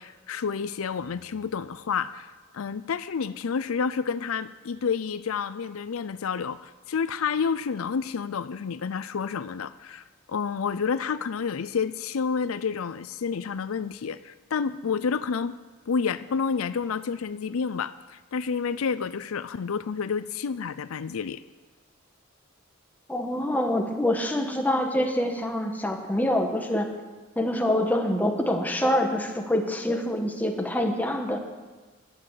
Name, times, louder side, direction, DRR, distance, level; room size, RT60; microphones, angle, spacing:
voice 1, 0.0-15.6 15.9-21.4, left 6 dB, 80° left, 14 dB, 0.5 m, -29 dB
voice 2, 23.1-26.9 27.3-31.4, left 1 dB, 10° left, 3 dB, 1.4 m, -25 dB
12.0 x 9.9 x 8.2 m, 1.3 s
head